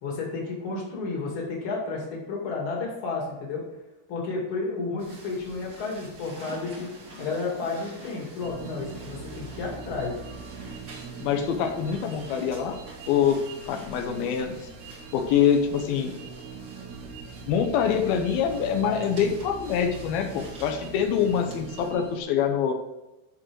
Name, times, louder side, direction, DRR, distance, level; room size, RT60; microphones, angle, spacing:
voice 1, 0.0-3.6 4.1-6.9 7.2-10.2, left 3 dB, 40° left, -2 dB, 2.7 m, -32 dB
sound 1, 5.0-21.9, right 1 dB, 35° right, 2.2 m, -47 dB
sound 2, 8.4-22.2, right 5 dB, 65° right, 2.1 m, -42 dB
voice 2, 11.2-12.8 13.1-13.4 13.7-14.6 15.1-16.1 17.5-22.7, left 8 dB, 90° left, 5 dB, 2.8 m, -25 dB
10.5 x 6.3 x 4.6 m, 1.0 s
omnidirectional pair, 4.1 m